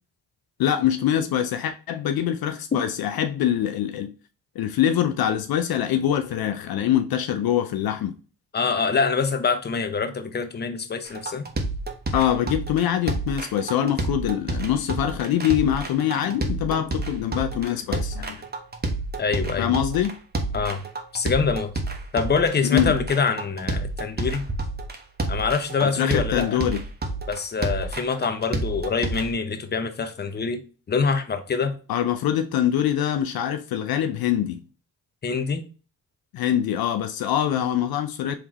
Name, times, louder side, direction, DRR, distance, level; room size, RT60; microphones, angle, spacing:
voice 1, 0.6-4.1 4.6-8.2 12.1-18.4 19.6-20.1 22.6-22.9 26.0-26.8 31.9-34.6 36.3-38.4, left 10 dB, 65° left, 0.5 m, -24 dB
voice 2, 8.5-11.5 19.2-19.7 20.5-20.8 21.1-21.7 22.1-24.5 25.3-26.6 27.3-30.6 30.9-31.8 35.2-35.6, left 5 dB, 25° left, 0.6 m, -25 dB
sound 1, 11.1-29.3, right 2 dB, 25° right, 0.9 m, -29 dB
3.5 x 3.2 x 3.0 m
supercardioid pair, 50°, 39 cm